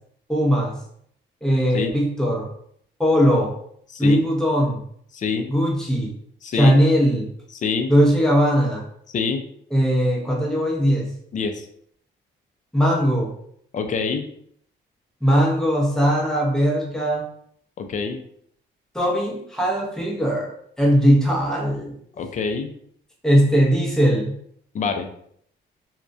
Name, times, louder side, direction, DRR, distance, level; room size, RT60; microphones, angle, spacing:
voice 1, 0.3-0.8 1.4-2.5 3.0-3.5 4.0-4.8 5.5-6.1 6.5-7.3 7.9-8.8 9.7-11.2 12.7-13.3 15.2-17.2 18.9-22.0 23.2-24.3, equal, 5° left, -3 dB, 0.7 m, -19 dB
voice 2, 5.1-5.5 6.4-6.8 7.5-7.9 9.1-9.4 11.3-11.7 13.7-14.3 17.8-18.2 22.2-22.7 24.7-25.1, left 5 dB, 40° left, 6 dB, 0.4 m, -25 dB
2.2 x 2.2 x 2.5 m, 0.66 s
cardioid pair, 90°, 20 cm